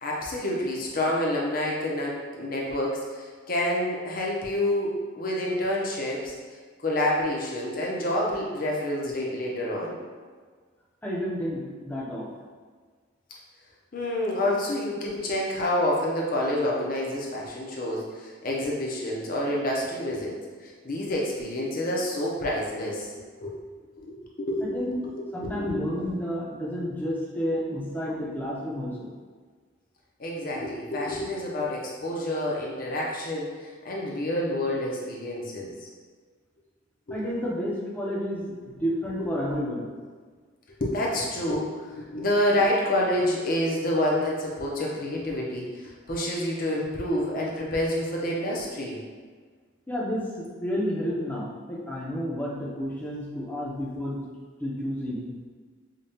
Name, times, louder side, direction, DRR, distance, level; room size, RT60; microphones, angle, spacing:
voice 1, 0.0-6.3 6.8-10.0 13.9-20.4 20.6-23.1 23.4-23.5 24.0-24.8 25.0-25.8 30.2-35.7 37.1-37.3 39.2-39.3 40.8-49.0, left 1 dB, 45° left, -3 dB, 0.7 m, -28 dB
voice 2, 11.0-12.3 24.6-25.0 25.3-29.1 37.1-39.9 49.9-54.2 54.6-55.3, equal, 10° left, -5 dB, 0.6 m, -31 dB
5.1 x 2.3 x 2.8 m, 1.5 s
head